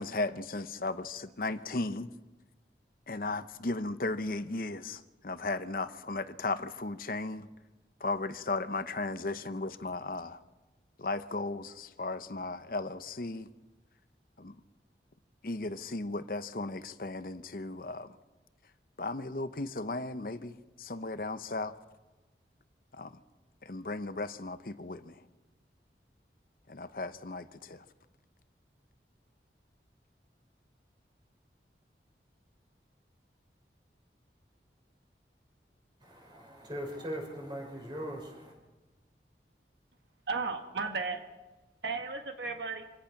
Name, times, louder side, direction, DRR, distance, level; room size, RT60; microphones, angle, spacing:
voice 1, 0.0-2.1 3.1-7.5 8.0-10.4 11.0-13.5 14.4-14.6 15.4-18.2 19.0-21.7 22.9-23.2 23.6-25.2 26.7-27.8, left 2 dB, 55° left, 11 dB, 0.8 m, -36 dB
voice 2, 36.0-38.5, equal, 25° right, 1 dB, 5.6 m, -40 dB
voice 3, 40.3-41.2 41.8-42.8, right 4 dB, 80° right, 5 dB, 1.8 m, -34 dB
26.5 x 17.0 x 5.9 m, 1.1 s
head